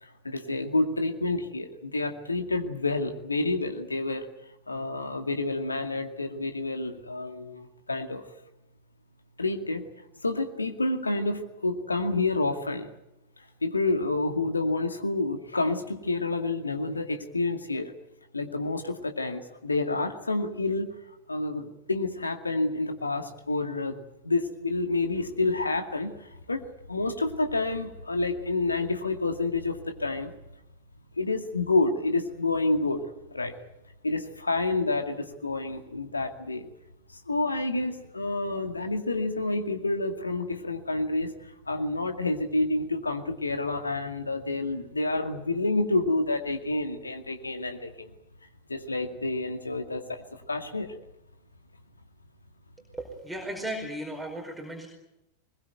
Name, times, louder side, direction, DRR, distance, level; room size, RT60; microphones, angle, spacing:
voice 1, 0.0-4.3 4.7-8.2 9.4-9.8 10.2-12.9 13.6-17.9 18.3-20.9 21.3-24.0 24.2-26.1 26.5-30.3 31.2-33.0 33.3-33.5 34.0-36.7 37.3-41.3 41.7-48.1 48.7-50.9, left 2 dB, 80° left, 6 dB, 2.2 m, -29 dB
voice 2, 52.9-54.9, right 1 dB, 5° right, 0 dB, 4.8 m, -36 dB
22.5 x 21.0 x 9.2 m, 0.89 s
figure-of-eight pair, 90°, 0 cm